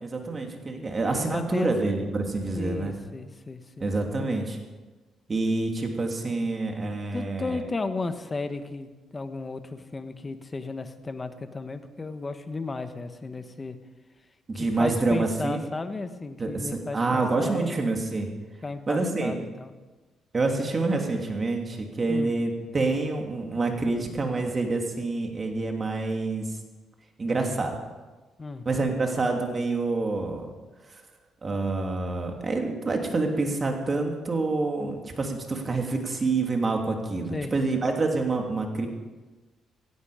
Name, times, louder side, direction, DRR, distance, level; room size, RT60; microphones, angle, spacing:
voice 1, 0.0-3.0 3.8-4.6 5.3-7.6 14.5-15.6 16.4-18.3 18.9-19.3 20.3-26.5 27.2-27.8 28.6-30.5 31.4-38.9, right 3 dB, 35° right, 2 dB, 3.0 m, -27 dB
voice 2, 0.6-1.7 2.6-3.9 4.2-4.4 7.1-13.8 14.5-17.8 18.6-19.7 22.1-22.3 28.4-28.7 37.3-37.5, left 3 dB, 25° left, 9 dB, 1.3 m, -34 dB
16.5 x 16.0 x 5.1 m, 1.3 s
cardioid pair, 90°, 0 cm